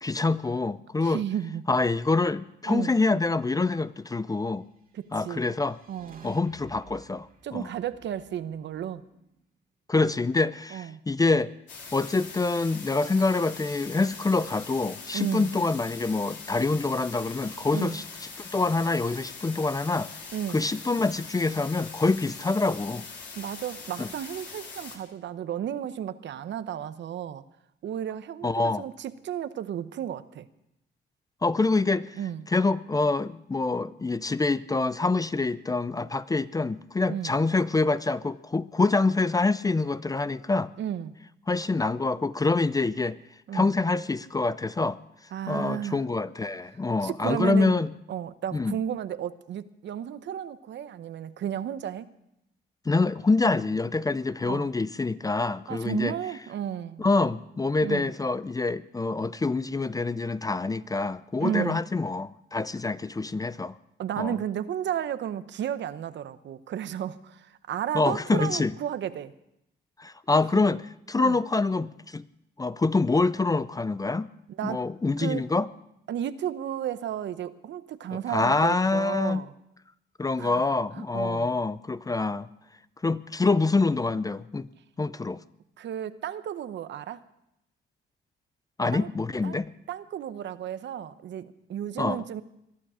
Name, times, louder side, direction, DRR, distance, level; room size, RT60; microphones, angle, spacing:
voice 1, 0.0-1.2 1.7-4.6 5.1-5.8 6.2-7.3 7.5-7.7 9.9-11.5 11.9-18.0 18.4-20.1 20.5-23.1 24.0-24.1 28.4-28.8 31.4-32.2 32.5-40.7 41.5-43.2 43.5-45.0 45.5-47.9 48.5-48.8 52.9-56.1 57.0-63.8 64.2-64.4 67.9-68.7 70.0-70.8 71.1-72.2 72.6-74.3 74.6-75.7 78.1-79.4 80.2-82.5 83.0-84.7 85.0-85.4 88.8-89.7 92.0-92.2, left 3 dB, 20° left, 15 dB, 0.5 m, -26 dB
voice 2, 1.0-1.6 2.7-2.9 4.9-5.4 5.9-6.3 7.4-9.0 10.7-11.0 15.1-15.5 17.7-18.0 20.3-20.6 23.4-27.4 27.8-30.5 32.2-32.5 37.1-37.3 40.8-41.1 43.5-43.7 45.3-46.0 47.0-47.8 48.1-52.1 54.4-54.7 55.7-57.1 57.8-58.1 61.4-61.8 64.0-69.3 71.2-71.4 74.6-74.9 75.2-75.5 76.1-79.5 80.4-80.6 80.9-81.6 85.8-87.2 88.9-89.1 89.4-89.6 89.9-92.4, right 10 dB, 65° right, 13 dB, 0.9 m, -33 dB
sound 1, 5.0-9.3, right 4 dB, 45° right, 2.1 m, -54 dB
sound 2, 11.7-25.0, left 4 dB, 65° left, 3.7 m, -42 dB
22.0 x 11.5 x 5.0 m, 0.81 s
cardioid pair, 90°, 20 cm